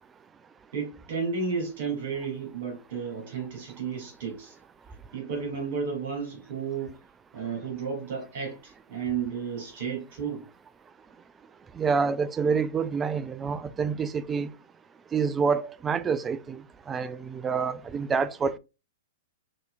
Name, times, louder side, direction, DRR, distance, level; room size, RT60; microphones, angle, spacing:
voice 1, 0.7-4.6 5.1-7.0 7.3-10.4, right 5 dB, 60° right, 2.4 m, -32 dB
voice 2, 11.8-14.5 15.1-16.6 16.9-18.6, right 5 dB, 20° right, 0.3 m, -27 dB
5.4 x 2.8 x 2.4 m
hypercardioid pair, 120°, 0 cm